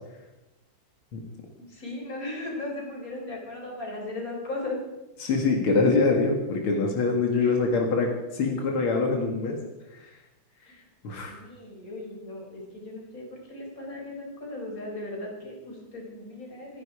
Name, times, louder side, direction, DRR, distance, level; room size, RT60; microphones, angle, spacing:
voice 1, 1.6-4.8 7.4-7.6 11.3-16.8, left 2 dB, 40° left, 0 dB, 4.8 m, -37 dB
voice 2, 5.2-9.6 9.9-10.1 11.0-11.3, left 3 dB, 85° left, 2 dB, 2.8 m, -24 dB
27.5 x 10.5 x 4.9 m, 1.0 s
omnidirectional pair, 2.3 m